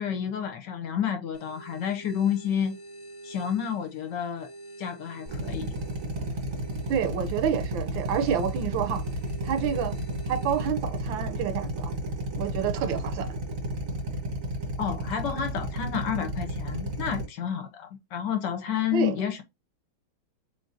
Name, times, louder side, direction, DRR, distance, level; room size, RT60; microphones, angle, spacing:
voice 1, 0.0-2.8 3.2-4.5 4.8-5.8 14.8-19.4, left 8 dB, 70° left, 1.2 m, -30 dB
sound 1, 1.3-10.7, right 2 dB, 40° left, 0.4 m, -48 dB
Drill, 5.3-17.2, equal, 40° right, 0.8 m, -32 dB
voice 2, 6.9-9.0 9.4-9.9 10.3-11.9 12.4-13.4 18.9-19.1, right 8 dB, 80° right, 1.3 m, -28 dB
3.8 x 3.8 x 2.6 m
omnidirectional pair, 2.2 m